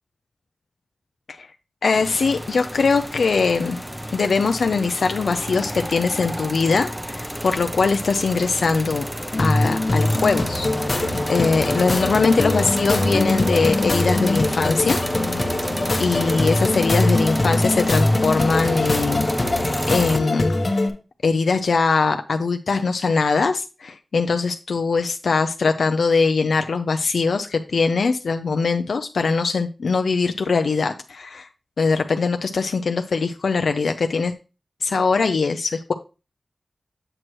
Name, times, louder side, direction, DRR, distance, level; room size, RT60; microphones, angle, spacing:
voice 1, 1.8-3.8 4.1-9.1 9.4-15.0 16.0-19.6 19.9-20.5 21.2-31.5 31.8-34.3 34.8-35.9, left 4 dB, 90° left, 7 dB, 0.4 m, -21 dB
sound 1, 1.9-20.2, equal, 5° right, 0.5 m, -29 dB
sound 2, 9.3-20.9, left 2 dB, 45° left, 1.0 m, -22 dB
7.7 x 6.1 x 3.0 m, 0.31 s
wide cardioid pair, 105°, 0 cm